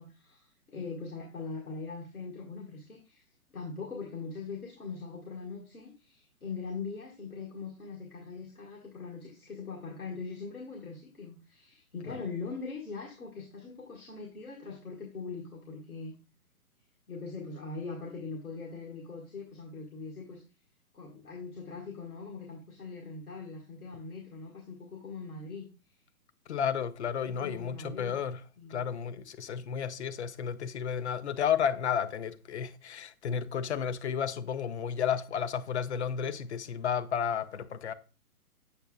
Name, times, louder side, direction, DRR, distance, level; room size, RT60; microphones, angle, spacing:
voice 1, 0.0-3.2 3.5-16.1 17.1-20.4 20.9-25.7 27.3-28.2 28.6-28.9, left 4 dB, 75° left, 1.7 m, -41 dB
voice 2, 26.5-28.4 28.7-37.9, left 8 dB, 50° left, 0.5 m, -32 dB
8.0 x 6.3 x 2.3 m
figure-of-eight pair, 125°, 44 cm